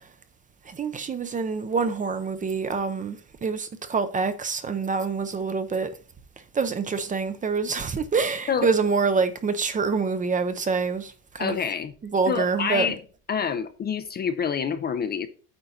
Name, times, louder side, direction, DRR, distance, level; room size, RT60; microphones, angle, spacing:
voice 1, 0.7-5.9 6.5-11.6 12.0-12.9, right 5 dB, 20° right, 0.6 m, -26 dB
voice 2, 11.4-11.9 12.3-13.0 13.3-15.3, left 7 dB, 25° left, 0.5 m, -27 dB
8.8 x 3.9 x 5.7 m
cardioid pair, 155°, 37 cm